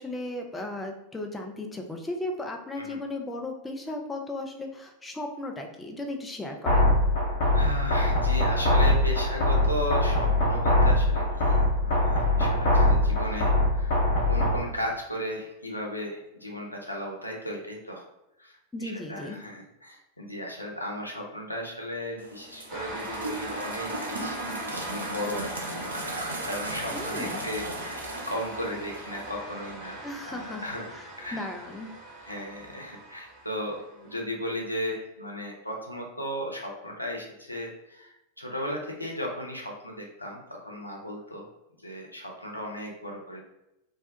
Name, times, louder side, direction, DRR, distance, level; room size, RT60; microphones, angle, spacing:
voice 1, 0.0-7.0 18.7-19.4 26.9-27.5 30.0-30.6 30.9-31.0 31.3-31.9, left 2 dB, 10° left, 2 dB, 0.4 m, -36 dB
sound 1, 6.7-14.7, left 1 dB, 50° left, 0.6 m, -23 dB
voice 2, 7.5-14.0 14.3-18.1 18.4-30.0 30.2-31.5 32.2-41.5 41.8-43.4, equal, 85° left, -1 dB, 0.5 m, -36 dB
sound 2, 22.2-29.3, right 1 dB, 75° right, 0.5 m, -37 dB
sound 3, 22.7-34.2, right 2 dB, 15° right, 0.9 m, -40 dB
2.2 x 2.1 x 2.7 m, 0.89 s
figure-of-eight pair, 90°, 0 cm